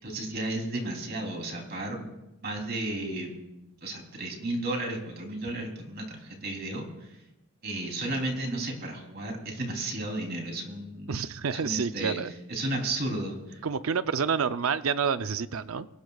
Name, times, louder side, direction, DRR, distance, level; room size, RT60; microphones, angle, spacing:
voice 1, 0.0-2.1 2.4-3.3 3.8-7.2 7.6-11.1 11.6-12.2 12.5-13.6, right 2 dB, 45° right, 1 dB, 3.3 m, -33 dB
voice 2, 11.1-12.3 13.6-15.9, right 6 dB, 70° right, 12 dB, 0.6 m, -28 dB
24.5 x 18.5 x 2.4 m, 0.94 s
head